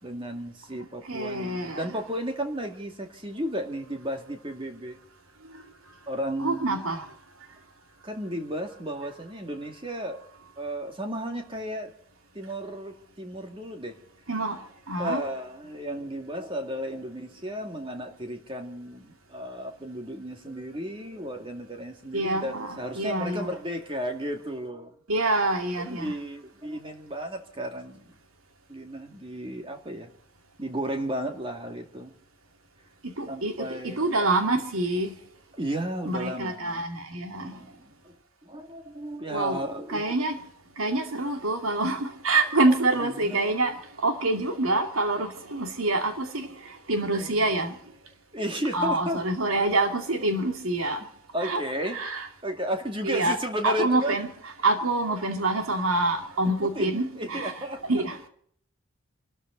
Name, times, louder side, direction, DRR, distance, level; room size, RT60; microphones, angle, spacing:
voice 1, 0.0-5.0 6.1-6.8 8.0-10.3 10.6-11.9 12.3-14.0 15.0-24.9 25.8-28.2 28.7-30.1 30.6-32.1 33.3-34.1 35.5-36.8 37.4-38.1 38.4-40.0 43.0-43.5 47.1-47.5 48.3-49.2 51.3-52.0 52.4-54.2 56.6-57.8, equal, 25° right, 2.2 m, -34 dB
voice 2, 1.0-1.9 5.4-5.6 6.4-7.1 14.3-15.2 22.1-23.5 25.1-26.1 33.0-35.2 36.1-37.6 39.3-39.6 39.9-40.4 40.8-47.8 48.7-51.1 51.4-51.6 51.9-52.3 53.0-53.4 53.6-54.3 54.6-57.5 57.8-58.2, right 2 dB, 80° right, 2.6 m, -26 dB
27.5 x 13.0 x 4.0 m
head